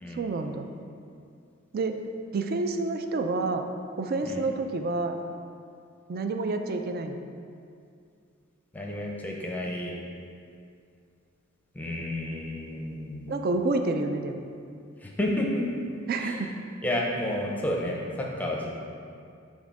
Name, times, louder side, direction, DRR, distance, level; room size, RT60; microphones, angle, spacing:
voice 1, 0.1-0.7 1.7-2.0 2.3-3.6 4.0-5.2 6.1-7.2 13.3-14.4 16.1-16.5, right 3 dB, 45° right, 6 dB, 0.4 m, -28 dB
voice 2, 8.7-10.0 11.7-13.3 15.0-15.7 16.2-16.4 16.8-18.7, left 1 dB, 10° left, -2 dB, 0.6 m, -31 dB
6.3 x 3.6 x 4.7 m, 2.4 s
head